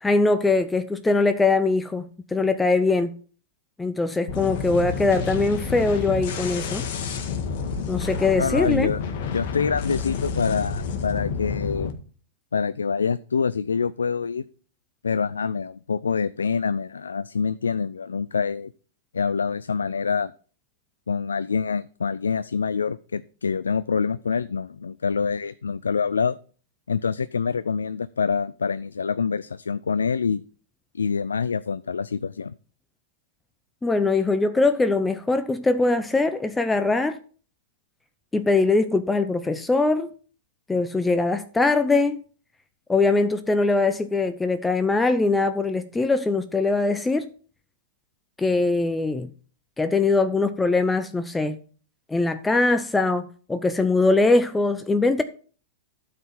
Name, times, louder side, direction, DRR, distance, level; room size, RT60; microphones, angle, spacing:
voice 1, 0.0-3.1 3.8-6.8 7.9-8.9 33.8-37.2 38.3-40.1 40.7-42.2 42.9-47.3 48.4-49.3 49.8-51.6 52.1-55.2, left 3 dB, 10° left, 0.6 m, -22 dB
sound 1, 4.3-11.9, left 5 dB, 55° left, 1.7 m, -29 dB
voice 2, 8.4-11.9 12.5-14.4 15.0-18.7 19.1-20.3 21.1-26.4 26.9-30.4 30.9-32.5, left 5 dB, 85° left, 0.3 m, -26 dB
12.0 x 4.8 x 5.7 m
hypercardioid pair, 105°, 0 cm